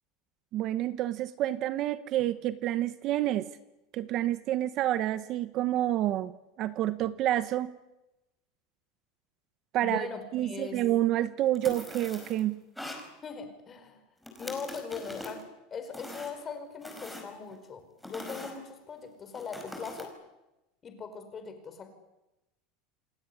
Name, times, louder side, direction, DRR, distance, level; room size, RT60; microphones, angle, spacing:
voice 1, 0.5-3.5 3.9-6.3 6.6-7.7 9.7-10.1 10.3-12.6, right 13 dB, 40° right, 14 dB, 1.0 m, -28 dB
voice 2, 9.8-10.8 13.2-14.0 14.4-15.4 15.7-20.1 20.8-21.9, left 5 dB, 25° left, 8 dB, 5.1 m, -40 dB
sound 1, 11.6-12.4 12.8-13.1 14.2-15.4 15.9-16.4 16.8-17.6 18.0-18.5 19.3-20.1, left 1 dB, ahead, 4.8 m, -42 dB
28.5 x 19.5 x 10.0 m, 0.96 s
supercardioid pair, 150°, 0 cm